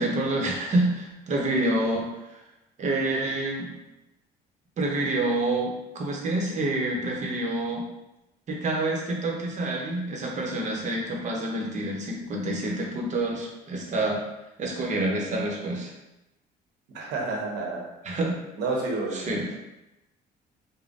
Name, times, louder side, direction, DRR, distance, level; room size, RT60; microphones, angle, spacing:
voice 1, 0.0-2.1 2.8-3.7 4.8-7.8 8.5-14.2 14.6-15.9 18.0-18.4 19.1-19.5, right 2 dB, 45° right, -1 dB, 0.9 m, -27 dB
voice 2, 16.9-17.9 18.6-19.3, right 3 dB, 85° right, -2 dB, 1.0 m, -29 dB
5.0 x 2.2 x 2.6 m, 0.94 s
cardioid pair, 110°, 17 cm